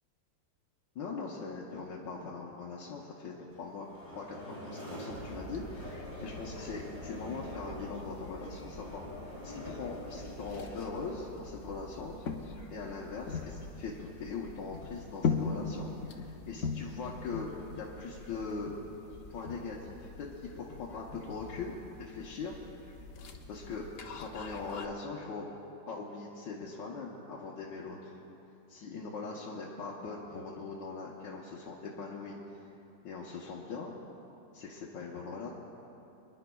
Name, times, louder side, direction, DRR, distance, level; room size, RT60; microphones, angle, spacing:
voice 1, 1.0-3.9 4.2-17.5 17.8-18.8 19.3-21.7 22.0-22.5 23.5-23.9 24.2-25.5 25.9-28.2 28.7-32.4 33.0-33.9 34.5-35.5, left 4 dB, 80° left, -5 dB, 1.7 m, -41 dB
sound 1, 3.5-18.4, equal, 60° right, 3.5 m, -47 dB
sound 2, 5.1-24.8, left 5 dB, 60° left, 0.8 m, -41 dB
29.5 x 10.5 x 2.3 m, 2.9 s
omnidirectional pair, 2.0 m